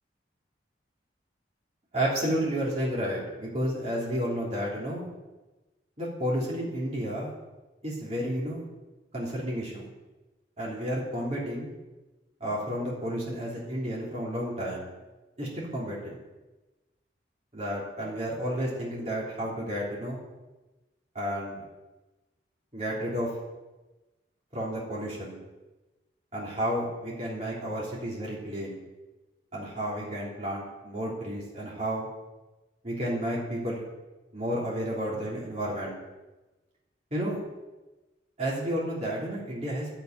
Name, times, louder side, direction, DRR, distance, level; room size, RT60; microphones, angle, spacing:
voice 1, 1.9-5.1 6.0-7.3 7.8-8.6 9.1-9.9 10.6-11.7 12.4-14.9 15.4-16.1 17.5-20.2 21.1-21.6 22.7-23.3 24.5-25.4 26.3-28.8 29.5-32.1 32.8-33.8 34.3-36.0 37.1-37.4 38.4-39.9, equal, 35° right, -5 dB, 3.3 m, -31 dB
11.0 x 7.9 x 9.3 m, 1.1 s
head